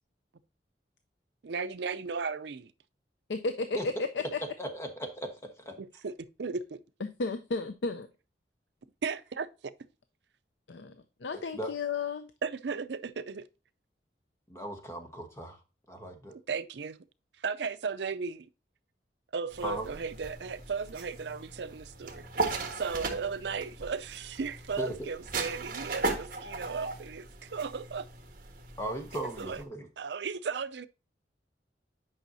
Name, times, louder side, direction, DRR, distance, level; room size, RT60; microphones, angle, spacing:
voice 1, 1.4-2.7 5.8-6.8 9.0-9.7 12.4-13.5 16.3-17.0 17.4-18.5 19.3-28.1 29.4-29.6 30.0-30.9, right 5 dB, 75° right, 0.5 m, -36 dB
voice 2, 3.3-4.4 7.0-8.1 10.7-12.3, left 3 dB, 80° left, 0.6 m, -33 dB
voice 3, 4.6-5.8 11.5-11.7 14.5-15.6 15.9-16.4 19.6-19.9 24.8-25.1 28.8-29.9, equal, 15° left, 1.2 m, -37 dB
sound 1, 19.5-29.6, right 3 dB, 50° right, 1.5 m, -38 dB
9.0 x 5.5 x 2.7 m
head